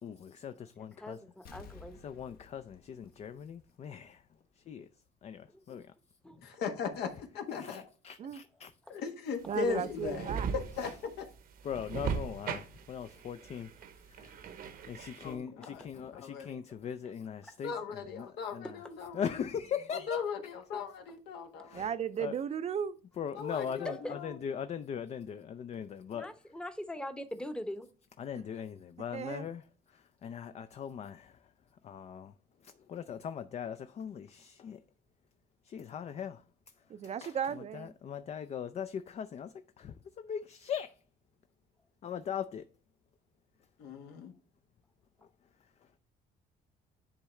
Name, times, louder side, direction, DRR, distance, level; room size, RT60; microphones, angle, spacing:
voice 1, 0.0-1.2 2.0-4.2 4.6-4.9 5.2-5.9 7.5-8.7 11.6-13.7 14.1-18.7 19.1-20.2 20.7-20.8 21.6-21.9 22.2-22.3 23.2-26.3 28.2-31.4 31.8-32.3 32.6-34.8 35.6-36.4 37.2-41.0 42.0-42.7, left 8 dB, 40° left, 0.4 m, -40 dB
voice 2, 0.5-2.0 5.5-5.8 6.2-6.5 8.9-9.0 13.4-13.5 14.7-14.9 15.2-15.3 15.6-15.7 17.4-17.5 18.6-18.7 23.8-24.1 26.1-27.9, left 1 dB, 5° left, 0.8 m, -42 dB
Explosion, 1.4-4.0 4.4-4.5, left 4 dB, 60° left, 1.1 m, -54 dB
voice 3, 6.4-7.8 8.9-11.3 15.2-16.6 17.6-19.5 19.9-21.9 23.4-24.3 43.8-44.3, left 6 dB, 80° left, 1.4 m, -38 dB
voice 4, 9.4-10.5 21.7-23.0 29.1-29.4 36.9-37.9, right 8 dB, 40° right, 0.5 m, -35 dB
sound 1, 9.4-15.3, right 6 dB, 60° right, 0.9 m, -39 dB
10.0 x 3.7 x 3.2 m
cardioid pair, 110°, 17 cm